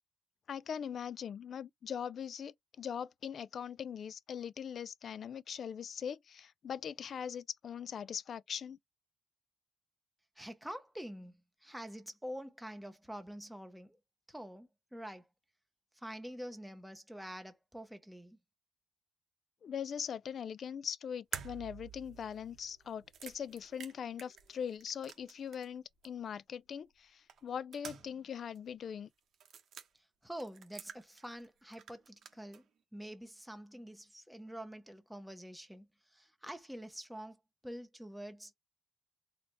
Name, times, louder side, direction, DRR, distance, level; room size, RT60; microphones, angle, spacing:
voice 1, 0.5-8.8 19.6-29.1, left 8 dB, 50° left, 0.3 m, -41 dB
voice 2, 10.4-11.3 11.6-14.0 14.3-15.3 16.0-18.4 30.2-32.6 32.9-38.5, equal, ahead, 0.6 m, -46 dB
sound 1, 21.3-25.8 26.0-26.1 27.3-28.3 28.5-28.6 29.3-29.9 30.4-31.5 31.7-32.6, right 8 dB, 60° right, 0.8 m, -49 dB
4.3 x 2.1 x 3.1 m
cardioid pair, 145°, 0 cm